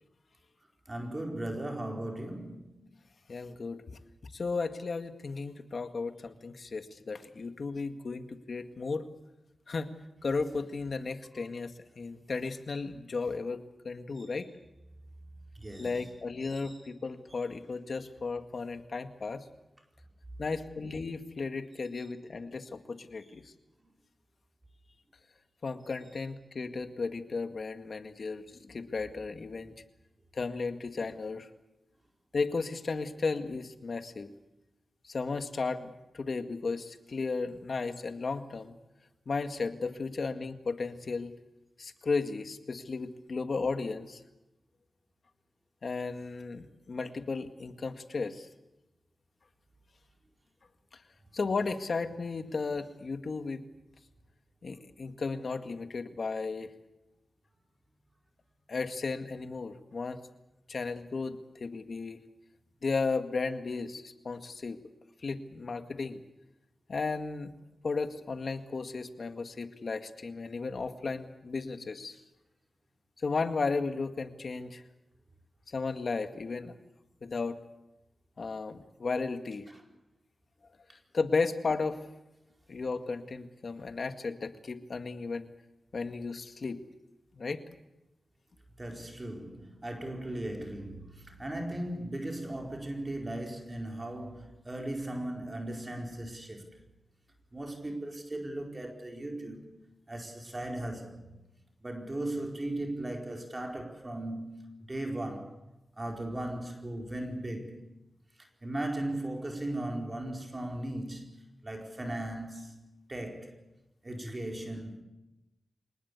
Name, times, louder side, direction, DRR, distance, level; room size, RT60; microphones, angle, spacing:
voice 1, 0.9-2.7 14.2-14.3 15.5-16.0 16.4-16.8 88.8-96.7 97.5-99.7 100.1-101.3 101.8-105.5 106.0-107.8 108.6-111.3 111.6-112.8 113.1-113.6 114.0-115.0, right 1 dB, 30° right, 4.5 m, -37 dB
voice 2, 3.3-4.0 4.3-9.0 9.7-9.9 10.2-14.5 15.8-19.4 20.4-23.5 25.6-29.7 30.3-31.5 32.3-34.3 35.0-38.8 39.3-41.3 41.8-44.2 45.8-48.5 50.9-51.0 51.3-53.6 54.6-56.7 58.7-60.2 60.7-62.2 62.8-64.8 65.2-66.2 66.9-67.5 67.8-72.2 73.2-74.8 75.7-76.8 77.2-77.6 78.4-79.7 81.1-82.0 82.7-85.5 85.9-86.8 87.3-87.6, left 4 dB, 60° left, 2.0 m, -34 dB
25.0 x 19.5 x 8.2 m
wide cardioid pair, 70°, 0 cm